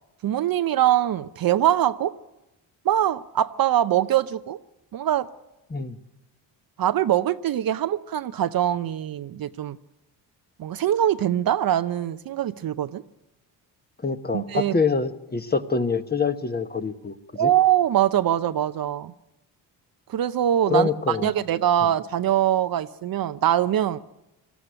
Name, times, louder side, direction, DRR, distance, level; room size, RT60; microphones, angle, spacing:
voice 1, 0.2-2.1 2.8-4.6 4.9-5.3 6.8-9.8 10.6-13.0 14.3-14.8 17.4-19.1 20.1-24.0, right 11 dB, 55° right, 11 dB, 0.7 m, -23 dB
voice 2, 14.0-17.5 20.7-21.3, left 4 dB, 20° left, 9 dB, 1.2 m, -25 dB
19.0 x 13.5 x 10.0 m, 0.97 s
supercardioid pair, 75°, 44 cm